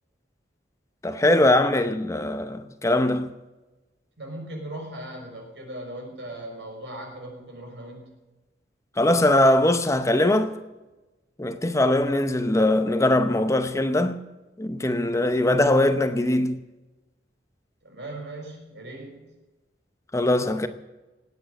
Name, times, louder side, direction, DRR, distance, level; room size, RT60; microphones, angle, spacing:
voice 1, 1.0-3.3 9.0-10.5 11.4-14.2 14.6-16.6 20.1-20.7, left 1 dB, 15° left, 0.8 m, -21 dB
voice 2, 4.2-8.1 17.8-19.2, right 1 dB, 80° right, 5.7 m, -38 dB
19.0 x 8.8 x 7.9 m
head